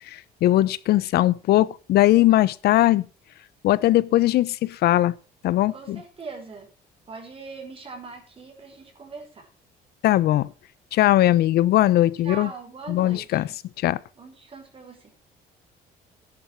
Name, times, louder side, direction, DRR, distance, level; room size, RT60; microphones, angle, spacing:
voice 1, 0.1-3.0 3.6-5.1 5.4-6.0 10.0-10.5 10.9-12.5 12.9-13.5 13.8-14.0, left 14 dB, 70° left, 0.8 m, -20 dB
voice 2, 5.7-6.7 7.1-9.5 12.2-13.6 14.2-15.1, right 4 dB, 35° right, 5.0 m, -41 dB
13.0 x 10.5 x 4.6 m
cardioid pair, 110°, 17 cm